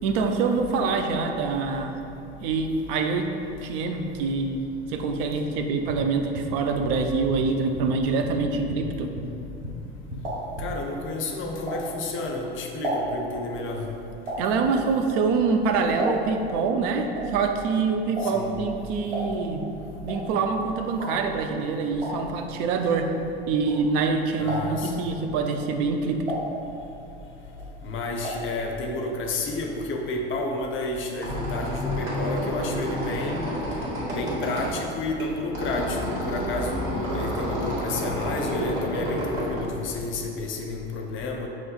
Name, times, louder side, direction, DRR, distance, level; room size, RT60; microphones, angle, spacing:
voice 1, 0.0-2.0 2.4-3.3 3.6-4.6 4.9-9.1 14.4-19.7 20.0-23.1 23.5-26.3, right 4 dB, 65° right, 5 dB, 0.5 m, -25 dB
sound 1, 5.9-6.6 6.8-7.0 7.3-8.4 8.7-9.9 10.1-10.6, left 1 dB, 25° right, 1.3 m, -36 dB
sound 2, 9.7-12.2 12.6-16.5 16.8-24.1 24.4-25.0 25.5-27.2 27.5-28.6 28.8-28.9 29.2-29.3, right 1 dB, 85° right, 1.2 m, -34 dB
voice 2, 10.6-13.8 18.2-18.5 24.4-24.9 27.8-33.6 34.1-41.5, left 2 dB, 40° left, 1 dB, 0.5 m, -30 dB
Squeak, 30.9-40.5, equal, 50° right, 1.3 m, -30 dB
5.4 x 3.0 x 2.4 m, 2.8 s
hypercardioid pair, 80°, 30 cm